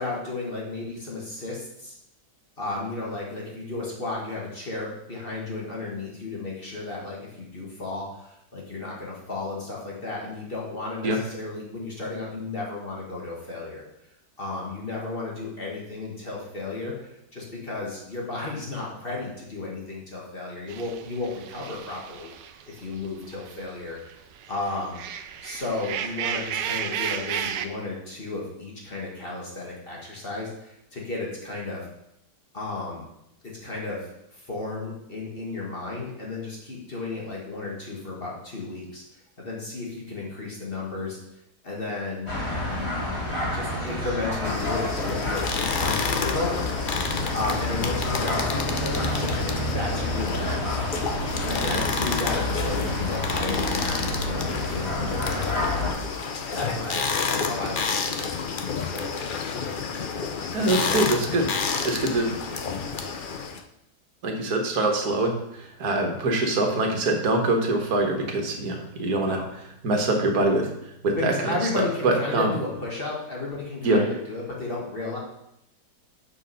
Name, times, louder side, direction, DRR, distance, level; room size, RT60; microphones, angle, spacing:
voice 1, 0.0-1.9 2.6-13.8 14.4-24.2 24.5-25.0 25.4-31.9 32.5-33.0 33.4-39.0 39.4-41.2 41.6-42.3 42.7-46.5 47.3-50.8 51.5-56.0 56.5-59.2 69.2-69.5 71.2-75.2, left 3 dB, 35° left, -3 dB, 1.7 m, -33 dB
sound 1, 20.7-23.6 24.0-27.7, right 8 dB, 85° right, 1.3 m, -33 dB
sound 2, 42.3-55.9, left 1 dB, 15° left, 2.0 m, -29 dB
sound 3, 44.4-63.6, left 5 dB, 85° left, 0.4 m, -30 dB
voice 2, 60.5-62.3 64.2-69.4 69.8-70.7 71.0-71.3 71.8-72.5 73.8-74.0, right 2 dB, 60° right, 3 dB, 1.7 m, -24 dB
6.6 x 5.6 x 5.5 m, 0.81 s
omnidirectional pair, 1.8 m